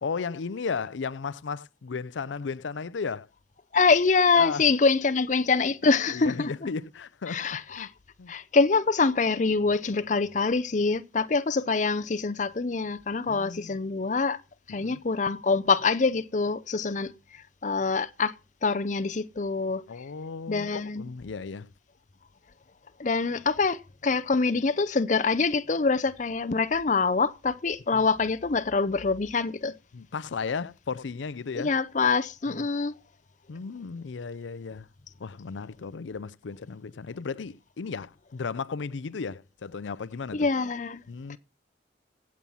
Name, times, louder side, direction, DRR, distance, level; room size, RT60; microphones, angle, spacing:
voice 1, 0.0-3.3 4.3-4.7 6.1-7.9 8.2-8.3 13.3-13.8 14.7-15.0 19.9-21.7 27.9-28.1 29.9-31.8 32.5-32.7 33.5-34.9 35.2-40.5 41.1-41.4, left 5 dB, 85° left, 0.5 m, -35 dB
voice 2, 3.7-6.5 7.3-7.9 8.3-14.4 14.7-18.3 18.6-19.8 20.5-21.1 23.0-29.7 31.5-32.9 40.3-41.0 41.3-41.4, left 4 dB, 40° left, 0.6 m, -25 dB
15.5 x 7.4 x 5.5 m
head